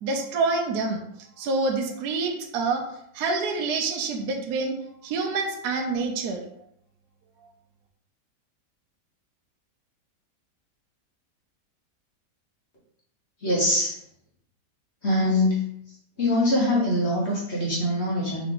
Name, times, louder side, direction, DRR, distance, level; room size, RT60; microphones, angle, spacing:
voice 1, 0.0-1.0 1.4-2.8 3.2-4.7 5.0-6.4, right 3 dB, 70° right, 2 dB, 1.2 m, -27 dB
voice 2, 13.4-13.9 15.0-15.6 16.2-18.5, left 1 dB, 45° left, -5 dB, 1.2 m, -23 dB
3.8 x 3.3 x 3.7 m, 0.72 s
omnidirectional pair, 1.9 m